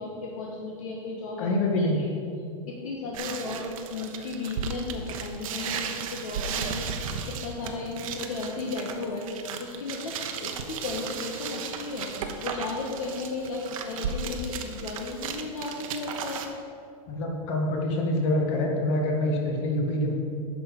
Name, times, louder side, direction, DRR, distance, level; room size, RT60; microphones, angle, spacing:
voice 1, 0.0-1.5 1.7-2.1 2.7-16.6, left 3 dB, 70° left, -1 dB, 1.4 m, -35 dB
voice 2, 1.4-2.0 17.1-20.1, left 1 dB, 50° left, 1 dB, 1.9 m, -26 dB
sound 1, 3.1-16.5, right 6 dB, 70° right, 1.0 m, -35 dB
10.0 x 6.4 x 5.3 m, 2.4 s
supercardioid pair, 155°, 18 cm